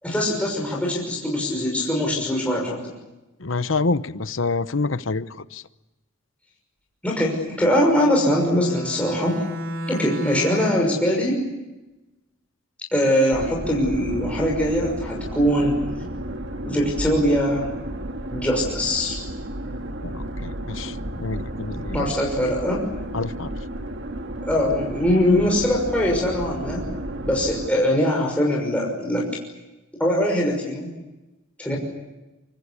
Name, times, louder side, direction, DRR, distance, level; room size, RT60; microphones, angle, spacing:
voice 1, 0.0-2.8 7.0-9.4 9.9-11.4 12.9-15.8 16.6-17.7 18.3-19.2 21.9-22.8 24.4-26.8 27.3-29.3 30.0-30.9 31.6-31.8, equal, 5° left, -2 dB, 6.0 m, -22 dB
voice 2, 3.4-5.6 20.0-22.1 23.1-23.5, left 3 dB, 65° left, 13 dB, 0.9 m, -27 dB
Bowed string instrument, 7.6-11.0, equal, 75° right, 2.9 m, -32 dB
sound 1, 13.3-27.7, right 1 dB, 60° right, 1.9 m, -32 dB
26.0 x 25.0 x 8.5 m, 1.0 s
head